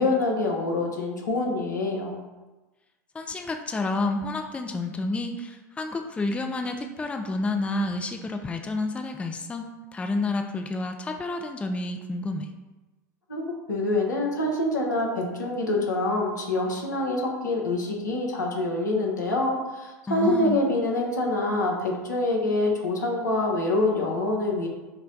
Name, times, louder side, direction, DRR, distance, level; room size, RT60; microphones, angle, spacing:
voice 1, 0.0-2.2 13.3-24.7, left 2 dB, 85° left, -1 dB, 1.0 m, -26 dB
voice 2, 3.1-12.5 20.1-20.6, left 2 dB, 15° left, 5 dB, 0.4 m, -30 dB
5.8 x 2.2 x 3.9 m, 1.1 s
figure-of-eight pair, 80°, 10 cm